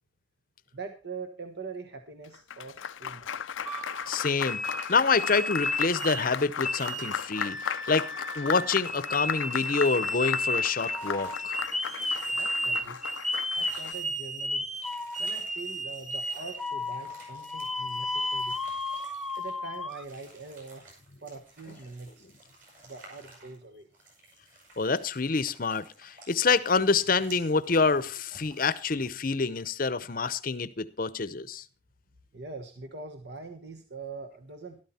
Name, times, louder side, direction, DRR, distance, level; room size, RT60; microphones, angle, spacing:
voice 1, 0.7-3.5 12.3-13.0 13.5-14.7 15.2-18.6 19.3-20.9 21.2-22.3 22.8-23.9 32.3-34.8, right 4 dB, 60° right, 1.3 m, -43 dB
Applause, 2.2-13.9, left 8 dB, 90° left, 0.5 m, -36 dB
sound 1, 3.6-6.3 6.6-20.0, left 1 dB, ahead, 0.8 m, -33 dB
voice 2, 4.1-8.1 8.4-11.6 24.8-31.6, left 4 dB, 45° left, 0.8 m, -27 dB
sound 2, 11.0-29.1, right 2 dB, 45° right, 7.7 m, -55 dB
13.0 x 12.5 x 4.2 m
head